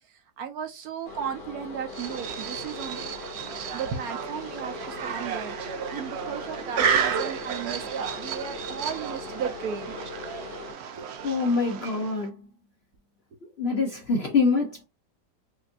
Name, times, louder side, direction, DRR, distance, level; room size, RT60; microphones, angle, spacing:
voice 1, 0.1-3.2 3.7-5.6 5.9-9.9 10.9-11.0, right 7 dB, 65° right, 1.1 m, -35 dB
sound 1, 1.0-10.7, left 3 dB, 75° left, 2.1 m, -41 dB
sound 2, 1.9-12.3, right 7 dB, 80° right, 0.5 m, -32 dB
voice 2, 11.2-12.5 13.6-14.8, left 4 dB, 55° left, 0.7 m, -25 dB
5.2 x 2.6 x 2.5 m
omnidirectional pair, 1.9 m